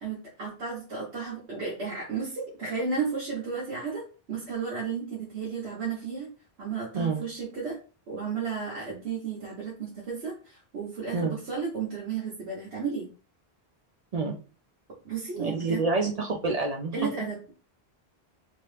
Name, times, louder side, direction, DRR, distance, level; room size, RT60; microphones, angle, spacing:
voice 1, 0.0-6.3 6.6-7.8 8.1-13.1 15.0-15.8 16.9-17.5, right 5 dB, 85° right, -5 dB, 1.3 m, -33 dB
voice 2, 15.4-16.9, right 3 dB, 55° right, 1 dB, 0.4 m, -27 dB
3.0 x 2.8 x 3.2 m, 0.36 s
omnidirectional pair, 1.1 m